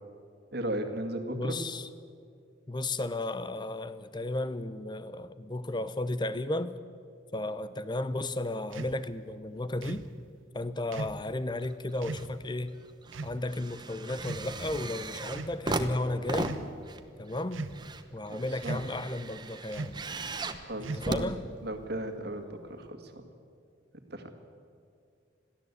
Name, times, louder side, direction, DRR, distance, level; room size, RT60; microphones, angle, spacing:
voice 1, 0.5-1.6 18.3-18.8 20.3-21.4 21.6-23.2 24.1-24.3, right 1 dB, 55° right, 2.0 m, -36 dB
voice 2, 1.3-1.9 2.7-6.8 7.3-10.1 10.5-12.8 13.2-16.5 17.2-17.7 18.1-20.0 20.9-21.5, left 2 dB, 25° left, 0.7 m, -34 dB
sound 1, 8.7-9.0 9.8-10.1 10.9-11.2 12.0-12.3 13.1-13.4 14.2-14.8 15.3-15.6 16.3-16.7 17.5-17.9 18.6-19.0 19.7-20.1 20.8-21.3, right 3 dB, 85° right, 0.9 m, -38 dB
sound 2, 11.6-12.3 12.7-22.1 22.8-22.9, right 2 dB, 20° right, 1.0 m, -38 dB
21.5 x 15.0 x 8.4 m
head